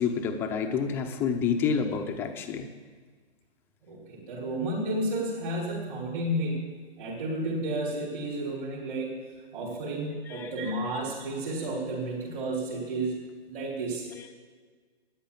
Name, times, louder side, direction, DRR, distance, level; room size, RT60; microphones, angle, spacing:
voice 1, 0.0-2.7 10.3-10.5 14.1-14.3, left 6 dB, 5° left, 4 dB, 0.5 m, -28 dB
voice 2, 3.8-6.7 7.0-9.1 9.5-13.1 13.5-14.1, right 1 dB, 50° right, -6 dB, 4.9 m, -32 dB
14.0 x 10.0 x 8.6 m, 1.5 s
hypercardioid pair, 145°, 34 cm